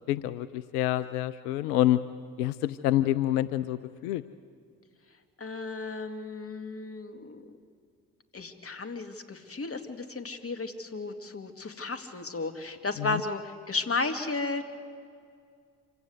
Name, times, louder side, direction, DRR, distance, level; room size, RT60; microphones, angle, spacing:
voice 1, 0.1-2.0 2.4-4.2 13.0-13.2, left 13 dB, 80° left, 14 dB, 0.6 m, -27 dB
voice 2, 5.4-7.4 8.3-14.6, left 3 dB, 30° left, 7 dB, 2.3 m, -34 dB
26.5 x 16.5 x 8.1 m, 2.2 s
hypercardioid pair, 50°, 45 cm